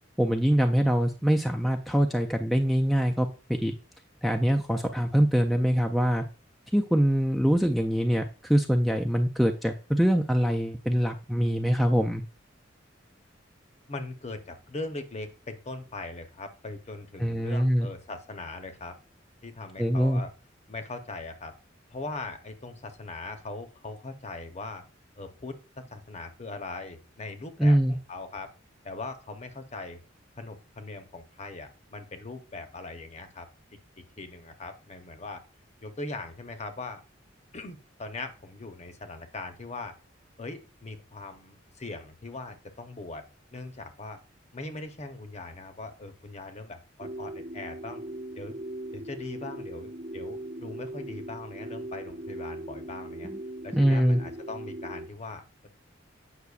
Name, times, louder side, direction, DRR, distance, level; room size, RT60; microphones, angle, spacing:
voice 1, 0.2-3.3 3.6-3.7 4.2-6.2 6.7-12.2 17.2-17.9 19.8-20.2 27.6-28.0 53.3-53.4 53.7-54.2, equal, ahead, 2 dB, 0.3 m, -24 dB
voice 2, 13.9-19.0 19.4-20.3 20.7-21.5 21.9-24.9 25.2-28.5 28.8-30.0 30.4-33.5 34.0-35.4 35.8-37.0 37.5-40.0 40.4-43.2 43.5-44.2 44.5-48.0 48.4-48.6 48.9-53.3 53.6-55.7, left 3 dB, 35° left, 7 dB, 0.7 m, -40 dB
sound 1, 47.0-55.1, right 1 dB, 45° right, 0.8 m, -39 dB
8.2 x 5.6 x 2.3 m, 0.34 s
head